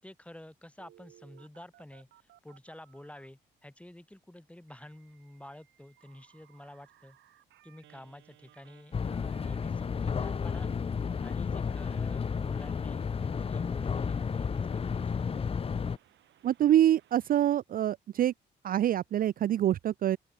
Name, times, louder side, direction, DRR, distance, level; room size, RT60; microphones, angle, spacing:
voice 1, 0.0-7.2 7.6-10.7 11.2-15.3, left 1 dB, 5° left, 4.5 m, -50 dB
Telephone, 0.8-3.3 4.7-17.5, right 13 dB, 75° right, 6.0 m, -63 dB
sound 1, 8.9-16.0, left 6 dB, 30° left, 0.6 m, -32 dB
voice 2, 16.4-18.3 18.6-20.2, right 11 dB, 50° right, 0.4 m, -25 dB
open air
supercardioid pair, 65°, 19 cm